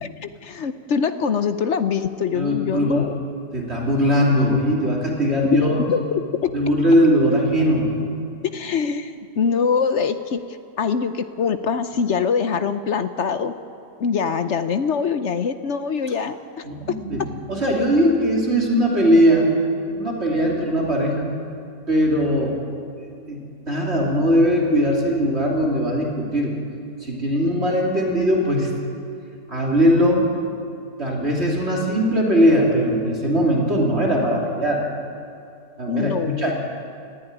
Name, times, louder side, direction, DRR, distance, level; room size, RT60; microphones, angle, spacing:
voice 1, 0.0-3.2 5.5-5.6 5.9-6.5 8.4-10.4 10.8-13.5 14.0-16.6 20.5-20.6 35.9-36.5, left 6 dB, 55° left, 10 dB, 0.9 m, -23 dB
voice 2, 2.3-3.1 3.5-5.9 6.5-7.9 16.6-17.2 17.5-19.5 19.9-21.3 21.9-22.6 23.0-23.4 23.7-26.5 27.0-28.7 29.5-30.2 31.0-34.8 35.8-36.5, equal, 40° right, -2 dB, 3.5 m, -20 dB
19.0 x 15.0 x 9.8 m, 2.4 s
omnidirectional pair, 1.8 m